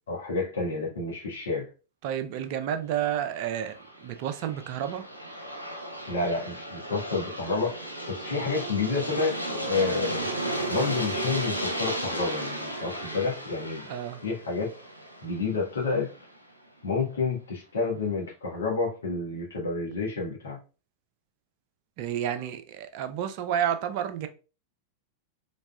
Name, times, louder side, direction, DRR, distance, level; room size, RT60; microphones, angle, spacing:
voice 1, 0.1-1.7 6.1-10.3 10.7-13.8 14.2-14.7 15.2-16.1 16.8-20.6, left 4 dB, 70° left, 1.2 m, -29 dB
voice 2, 2.0-5.0 13.9-14.2 22.0-24.3, right 10 dB, 45° right, 0.5 m, -30 dB
Aircraft, 3.4-16.2, right 1 dB, 90° right, 0.7 m, -34 dB
4.1 x 3.4 x 2.2 m
figure-of-eight pair, 90°, 0 cm